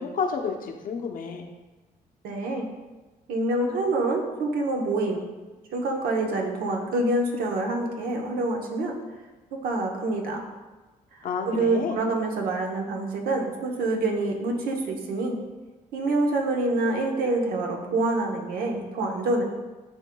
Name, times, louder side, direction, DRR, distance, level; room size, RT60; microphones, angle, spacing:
voice 1, 0.0-1.5 11.2-12.0, left 5 dB, 65° left, 3 dB, 0.8 m, -30 dB
voice 2, 2.2-2.7 3.3-5.2 5.7-9.0 9.5-10.4 11.5-15.4 15.9-19.4, right 2 dB, 80° right, 1 dB, 1.1 m, -26 dB
11.0 x 3.7 x 2.3 m, 1.2 s
cardioid pair, 110°, 15 cm